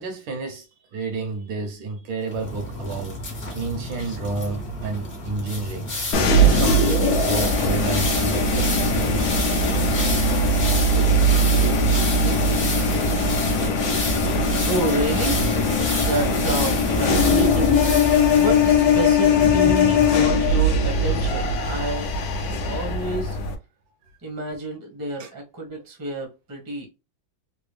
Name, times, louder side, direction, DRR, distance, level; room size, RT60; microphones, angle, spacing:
voice 1, 0.0-5.9 6.4-9.3 9.7-9.9 22.4-22.6 25.2-25.3, right 4 dB, 70° right, 1.5 m, -31 dB
sound 1, 2.3-20.1, left 2 dB, 35° left, 1.0 m, -30 dB
sound 2, 6.1-23.5, left 1 dB, 65° left, 1.0 m, -20 dB
voice 2, 14.6-15.5 16.0-17.9 18.3-22.1 22.7-23.4 24.2-26.9, right 2 dB, 15° right, 0.7 m, -29 dB
3.8 x 2.1 x 3.2 m
omnidirectional pair, 2.2 m